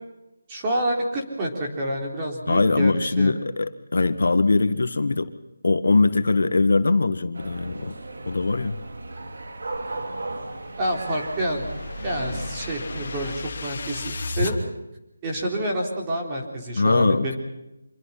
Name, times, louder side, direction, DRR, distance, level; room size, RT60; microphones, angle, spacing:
voice 1, 0.5-3.3 10.8-11.7 12.0-14.7 15.2-17.4, right 1 dB, 15° right, -1 dB, 4.1 m, -28 dB
voice 2, 2.5-5.3 5.6-8.0 8.3-8.8 16.8-17.4, left 3 dB, 65° left, 11 dB, 1.7 m, -21 dB
sound 1, 7.4-13.4, right 2 dB, 65° right, 3.3 m, -36 dB
sound 2, 10.5-14.6, left 4 dB, 35° left, 2.8 m, -34 dB
26.5 x 23.0 x 5.9 m, 0.92 s
figure-of-eight pair, 175°, 0 cm